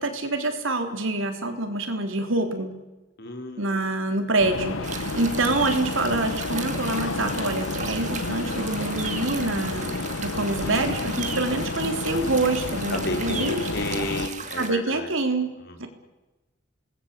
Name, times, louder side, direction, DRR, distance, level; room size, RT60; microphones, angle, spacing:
voice 1, 0.0-2.7 3.6-13.6 14.6-15.5 15.8-15.9, right 2 dB, 65° right, 6 dB, 3.6 m, -26 dB
voice 2, 3.2-4.0 4.9-5.5 12.9-15.1 15.6-15.9, left 1 dB, 50° left, 6 dB, 3.8 m, -33 dB
sound 1, 4.4-14.3, left 3 dB, 75° left, 1.4 m, -30 dB
sound 2, 4.8-14.7, right 6 dB, 35° right, 2.3 m, -37 dB
27.5 x 19.5 x 8.3 m, 1.1 s
head